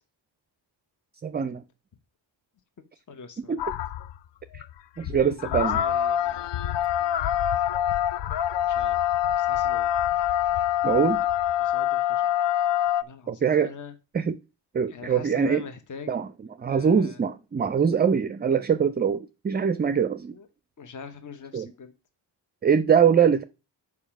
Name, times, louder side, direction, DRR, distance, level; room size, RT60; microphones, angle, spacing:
voice 1, 1.2-1.6 3.5-3.6 4.5-4.6 5.0-5.8 10.8-11.2 13.3-13.7 14.1-14.4 14.7-15.6 16.1-16.3 16.6-20.4 21.5-21.7 22.6-23.4, right 7 dB, 25° right, 0.4 m, -23 dB
voice 2, 3.1-3.8 5.2-6.8 8.6-10.0 11.6-12.3 13.0-13.9 14.9-16.2 16.7-17.2 20.3-20.5 20.8-21.9, left 5 dB, 45° left, 1.0 m, -43 dB
sound 1, 3.6-4.2 4.5-4.7 5.0-13.0, left 11 dB, 75° left, 0.5 m, -25 dB
7.0 x 4.9 x 5.9 m
cardioid pair, 90°, 43 cm